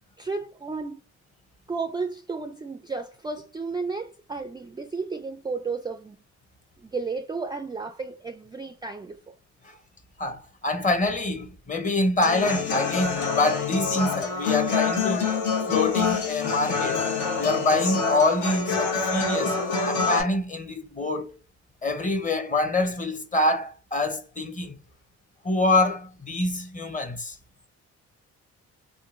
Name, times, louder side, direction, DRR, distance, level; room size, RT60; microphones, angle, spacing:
voice 1, 0.2-1.0 1.7-6.2 6.8-9.3, right 4 dB, 15° right, 0.3 m, -33 dB
voice 2, 10.2-15.4 15.7-17.0 17.4-21.3 21.8-24.7 25.4-27.4, left 2 dB, 25° left, 0.7 m, -25 dB
Human voice / Acoustic guitar, 12.2-20.2, left 5 dB, 80° left, 1.2 m, -26 dB
3.6 x 2.2 x 2.5 m
cardioid pair, 90°, 30 cm